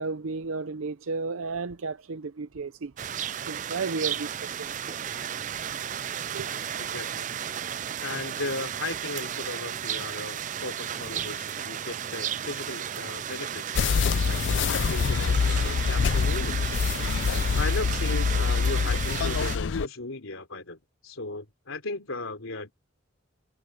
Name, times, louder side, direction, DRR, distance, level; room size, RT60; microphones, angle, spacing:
voice 1, 0.0-2.9 3.5-4.6 6.3-6.5, right 4 dB, 80° right, 0.6 m, -33 dB
sound 1, 3.0-19.6, right 9 dB, 40° right, 0.4 m, -34 dB
voice 2, 6.8-7.3 8.0-16.8 17.5-22.7, left 3 dB, 85° left, 3.4 m, -37 dB
sound 2, 13.8-19.9, left 5 dB, 60° left, 0.4 m, -25 dB
head